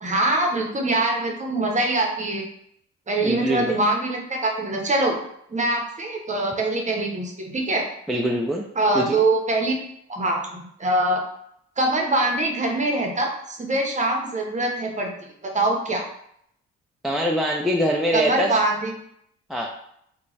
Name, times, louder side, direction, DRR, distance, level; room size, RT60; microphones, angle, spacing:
voice 1, 0.0-2.4 3.1-5.2 5.5-7.9 8.7-9.8 10.1-11.2 11.8-15.1 15.5-16.0 18.1-18.9, right 2 dB, 25° right, 1 dB, 0.8 m, -23 dB
voice 2, 3.2-3.8 8.1-8.6 8.9-9.2 17.0-18.5 19.5-19.7, right 1 dB, ahead, -1 dB, 0.3 m, -23 dB
3.0 x 2.3 x 4.0 m, 0.71 s
cardioid pair, 90°, 30 cm